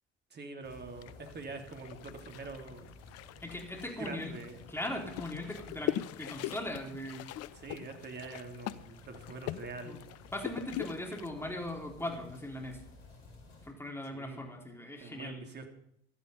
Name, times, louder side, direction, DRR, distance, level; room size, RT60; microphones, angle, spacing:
voice 1, 0.3-2.9 3.9-4.7 7.5-10.1 14.1-14.4 15.0-15.7, right 3 dB, 30° right, 5 dB, 3.2 m, -45 dB
sound 1, 0.6-13.7, left 3 dB, 70° left, 4.9 m, -55 dB
sound 2, 1.0-11.3, left 13 dB, 45° left, 0.7 m, -42 dB
voice 2, 3.4-4.3 4.7-7.3 9.8-10.0 10.3-12.8 13.6-15.4, left 1 dB, 5° left, 1 dB, 4.0 m, -39 dB
15.0 x 13.5 x 5.5 m, 0.71 s
figure-of-eight pair, 70°, 36 cm